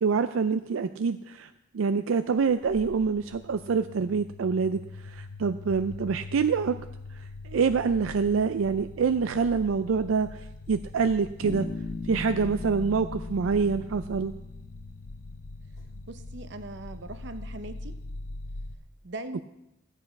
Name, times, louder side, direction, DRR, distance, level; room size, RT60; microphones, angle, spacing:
voice 1, 0.0-1.5 1.7-6.8 7.5-11.7 12.1-14.3, right 5 dB, 85° right, 10 dB, 0.4 m, -26 dB
sound 1, 2.4-18.8, left 2 dB, 70° left, 0.7 m, -42 dB
Bass guitar, 11.4-15.1, left 3 dB, 40° left, 0.9 m, -39 dB
voice 2, 16.1-18.0 19.0-19.4, right 2 dB, 65° right, 10 dB, 0.8 m, -40 dB
13.0 x 8.3 x 5.2 m, 0.87 s
head